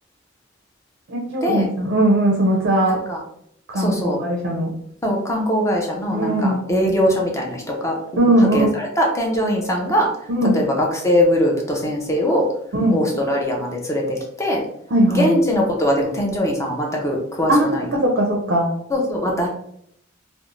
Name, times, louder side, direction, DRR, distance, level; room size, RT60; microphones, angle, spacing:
voice 1, 1.1-3.0 3.7-4.7 6.1-6.6 8.2-8.7 10.3-10.6 12.7-13.0 14.9-15.3 17.5-17.7 18.0-18.7, right 1 dB, 55° right, 0 dB, 0.4 m, -19 dB
voice 2, 2.9-3.2 3.7-4.2 5.0-8.0 8.5-10.1 10.5-12.5 12.9-14.6 15.1-17.9 18.9-19.5, equal, 15° left, 0 dB, 0.4 m, -21 dB
2.5 x 2.0 x 2.9 m, 0.73 s
head